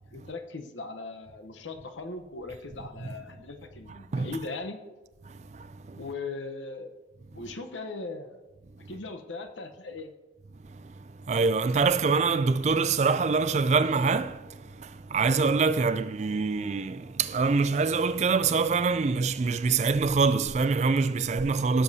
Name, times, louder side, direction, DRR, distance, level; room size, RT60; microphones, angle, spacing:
voice 1, 0.1-4.8 5.9-7.0 7.3-8.4 8.8-10.1, left 3 dB, 90° left, 0.9 m, -39 dB
voice 2, 5.3-6.0 10.7-21.8, right 4 dB, 35° right, 0.3 m, -25 dB
15.5 x 7.1 x 2.8 m
head